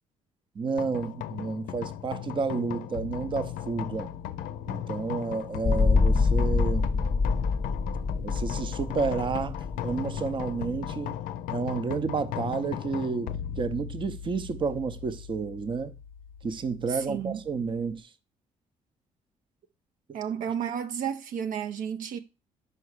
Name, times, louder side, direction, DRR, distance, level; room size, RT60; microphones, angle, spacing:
voice 1, 0.6-4.1 4.7-6.9 8.2-11.2 11.5-15.9 16.4-18.1 20.1-20.2, right 5 dB, 35° right, 0.6 m, -31 dB
sound 1, 0.8-18.0, left 11 dB, 80° left, 0.5 m, -37 dB
sound 2, 5.6-10.9, left 4 dB, 30° left, 0.6 m, -26 dB
voice 2, 16.9-17.4 20.1-22.2, right 8 dB, 70° right, 0.6 m, -32 dB
5.5 x 4.7 x 4.7 m
supercardioid pair, 65°, 14 cm